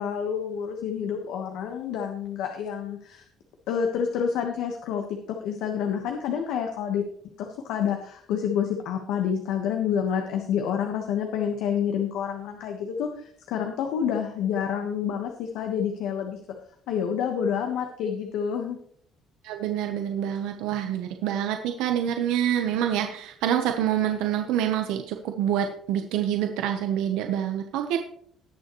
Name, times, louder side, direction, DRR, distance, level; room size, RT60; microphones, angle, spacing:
voice 1, 0.0-3.2 3.7-7.0 7.4-16.4 16.9-18.8, left 8 dB, 80° left, 3 dB, 1.3 m, -28 dB
voice 2, 19.4-28.0, right 10 dB, 90° right, 5 dB, 1.0 m, -26 dB
19.0 x 6.8 x 3.1 m, 0.63 s
cardioid pair, 125°, 0 cm